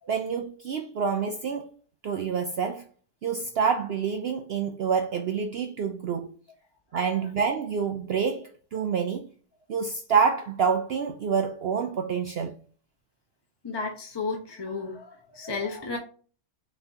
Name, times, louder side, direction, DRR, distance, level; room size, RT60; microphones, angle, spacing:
voice 1, 0.1-1.7 2.0-2.9 3.2-6.3 6.9-9.3 9.7-12.6, right 6 dB, 70° right, 0.6 m, -27 dB
voice 2, 13.6-16.0, left 4 dB, 25° left, 0.6 m, -33 dB
5.7 x 3.4 x 2.7 m
omnidirectional pair, 1.5 m